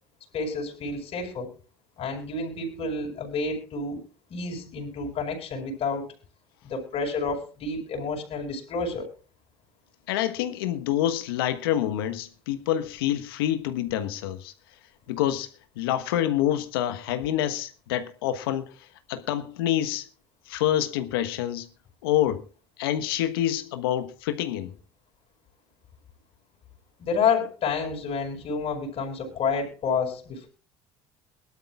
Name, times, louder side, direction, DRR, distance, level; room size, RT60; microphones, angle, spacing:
voice 1, 0.3-1.5 2.0-4.0 4.3-6.1 6.6-9.1 27.0-30.5, left 4 dB, 50° left, 5.8 m, -29 dB
voice 2, 10.1-14.5 15.1-20.1 20.5-21.7 22.0-22.5 22.8-24.7, left 12 dB, 80° left, 1.3 m, -27 dB
22.5 x 12.5 x 2.4 m
hypercardioid pair, 65°, 12 cm